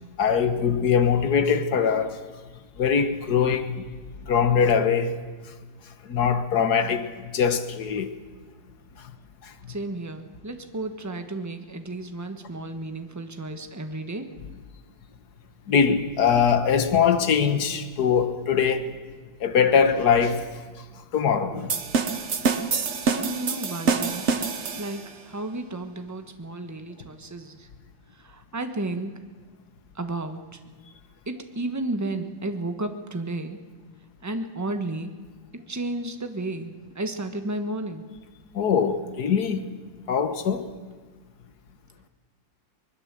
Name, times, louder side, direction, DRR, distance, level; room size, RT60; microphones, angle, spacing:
voice 1, 0.2-2.2 2.8-3.9 4.3-5.2 6.1-7.1 7.3-8.1 9.4-9.5 15.7-18.9 19.4-20.5 21.1-21.8 38.5-39.7 40.1-40.7, left 6 dB, 60° left, 1.8 m, -22 dB
voice 2, 9.7-14.3 23.0-27.7 28.1-29.1 29.9-30.6 31.3-33.6 34.2-35.1 35.5-38.0, right 2 dB, 10° right, 1.1 m, -33 dB
sound 1, 21.7-25.1, right 5 dB, 45° right, 1.2 m, -26 dB
24.5 x 20.0 x 7.6 m
omnidirectional pair, 2.0 m